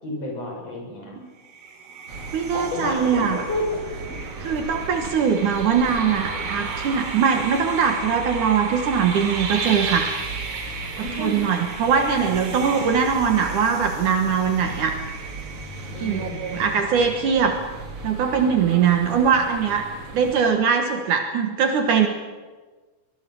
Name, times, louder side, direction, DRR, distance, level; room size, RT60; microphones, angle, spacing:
voice 1, 0.0-1.2 2.5-3.8 4.1-4.2 11.0-11.4 12.7-12.8 15.9-16.7, left 1 dB, 45° left, 0 dB, 6.9 m, -30 dB
sound 1, 1.4-17.7, right 4 dB, 80° right, 4.7 m, -34 dB
sound 2, 2.1-20.4, right 2 dB, 40° right, 3.0 m, -38 dB
voice 2, 2.3-3.4 4.4-10.1 11.0-14.9 16.0-17.6 18.0-19.9 20.1-22.1, right 6 dB, 60° right, 4 dB, 2.7 m, -21 dB
24.0 x 21.0 x 7.1 m, 1.3 s
omnidirectional pair, 4.3 m